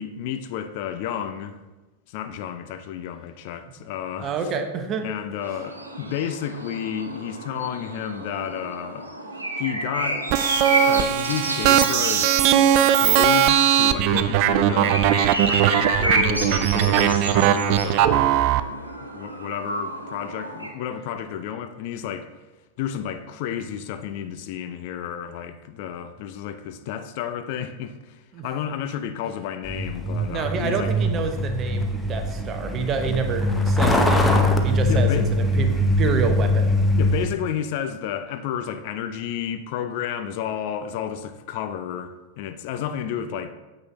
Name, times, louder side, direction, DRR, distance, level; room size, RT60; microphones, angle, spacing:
voice 1, 0.0-1.6 2.1-4.3 5.0-9.1 9.6-10.3 10.9-12.4 12.9-15.1 15.8-18.2 19.0-22.3 22.8-30.9 34.9-35.3 37.0-43.5, left 9 dB, 50° left, 0.5 m, -31 dB
voice 2, 4.2-5.1 28.3-28.5 28.9-29.0 30.3-36.8, right 5 dB, 30° right, 1.0 m, -28 dB
sound 1, 5.4-20.7, right 1 dB, 85° right, 1.1 m, -30 dB
sound 2, 10.3-18.6, right 11 dB, 45° right, 0.4 m, -19 dB
Truck, 29.6-37.3, left 1 dB, 10° left, 0.8 m, -22 dB
9.2 x 7.6 x 3.1 m
figure-of-eight pair, 90°, 0 cm